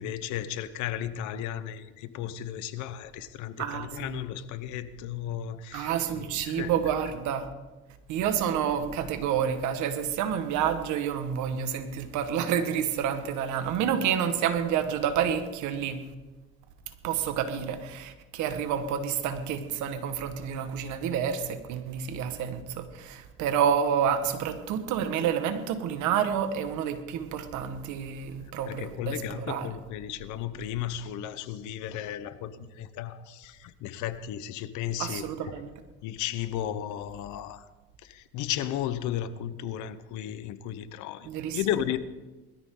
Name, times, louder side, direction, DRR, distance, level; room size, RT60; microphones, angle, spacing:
voice 1, 0.0-6.8 28.4-35.5 36.0-37.7 38.0-42.0, left 11 dB, 80° left, 1.0 m, -34 dB
voice 2, 3.6-4.2 5.7-7.5 8.1-16.0 17.0-29.7 35.0-35.7 41.2-41.6, right 8 dB, 80° right, 1.7 m, -29 dB
21.0 x 13.5 x 3.9 m
supercardioid pair, 85°, 29 cm